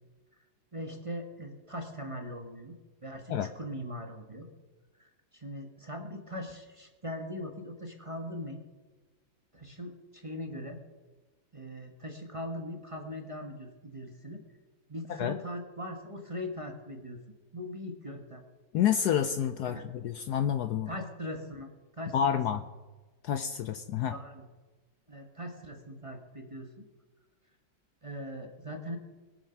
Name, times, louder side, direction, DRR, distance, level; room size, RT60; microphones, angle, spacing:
voice 1, 0.7-2.8 3.0-4.5 5.0-8.6 9.5-10.8 11.5-14.4 14.9-17.2 17.5-18.4 19.6-19.8 20.9-22.6 24.1-24.5 25.1-26.9 28.0-29.0, equal, 20° right, 4 dB, 1.2 m, -40 dB
voice 2, 18.7-20.9 22.1-22.6 23.2-24.2, left 9 dB, 70° left, 9 dB, 1.0 m, -29 dB
21.0 x 7.8 x 5.8 m, 1.2 s
omnidirectional pair, 2.1 m